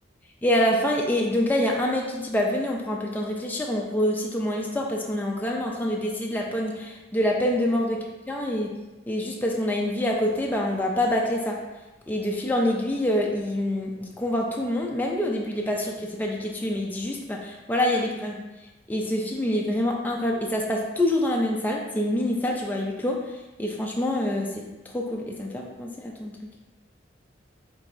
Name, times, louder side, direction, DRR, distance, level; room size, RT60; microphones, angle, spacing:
voice 1, 0.4-8.0 8.3-8.7 9.1-11.6 12.1-18.4 18.9-23.2 23.6-24.6 24.9-26.4, left 1 dB, 10° left, -1 dB, 0.4 m, -26 dB
4.6 x 3.9 x 2.6 m, 1.1 s
head